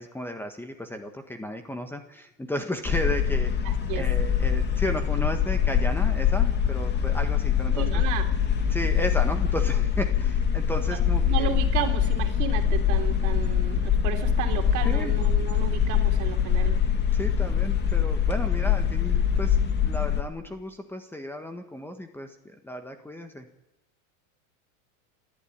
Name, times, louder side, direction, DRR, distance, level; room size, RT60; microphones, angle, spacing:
voice 1, 0.0-3.5 3.9-8.0 8.7-11.5 14.8-15.1 17.1-19.6 19.8-23.5, equal, 5° left, 6 dB, 1.5 m, -34 dB
sound 1, 2.8-20.2, left 8 dB, 25° left, 2.2 m, -24 dB
voice 2, 3.6-4.1 7.7-8.3 10.8-16.8, right 9 dB, 45° right, 5 dB, 3.2 m, -33 dB
28.5 x 12.5 x 8.8 m, 0.95 s
supercardioid pair, 130°, 41 cm